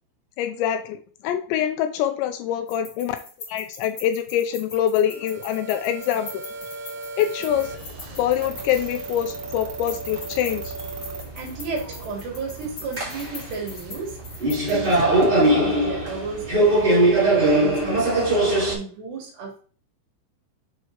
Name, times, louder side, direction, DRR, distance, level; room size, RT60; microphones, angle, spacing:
voice 1, 0.4-3.2 3.5-6.4 7.2-7.7 8.2-10.9, left 10 dB, 85° left, 8 dB, 2.7 m, -25 dB
sound 1, 2.7-9.3 9.7-14.9, left 3 dB, 50° left, 1.7 m, -42 dB
sound 2, 5.0-11.2, right 3 dB, 85° right, 3.3 m, -37 dB
sound 3, 7.5-18.7, right 1 dB, 30° right, 0.9 m, -22 dB
voice 2, 11.3-14.2 14.7-19.6, right 4 dB, 70° right, -1 dB, 3.7 m, -33 dB
8.1 x 4.5 x 3.0 m, 0.41 s
omnidirectional pair, 5.4 m